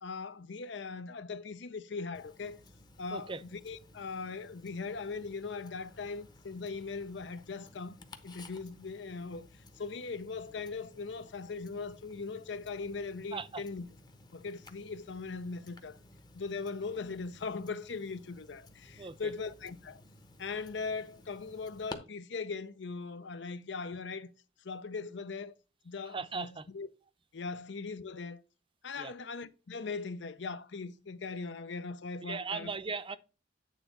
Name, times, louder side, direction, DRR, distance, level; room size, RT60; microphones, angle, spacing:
voice 1, 0.0-2.6 3.0-9.5 9.8-13.9 14.3-16.0 16.3-20.0 20.4-24.3 24.6-25.5 25.8-26.9 27.3-28.4 28.8-32.7, left 4 dB, 70° left, 0.6 m, -40 dB
Tick-tock, 2.1-21.9, left 2 dB, 25° left, 0.9 m, -55 dB
voice 2, 13.3-13.6 19.0-19.3 26.1-26.7 29.0-29.1 32.2-33.2, right 4 dB, 30° right, 0.6 m, -38 dB
9.1 x 3.6 x 5.5 m
head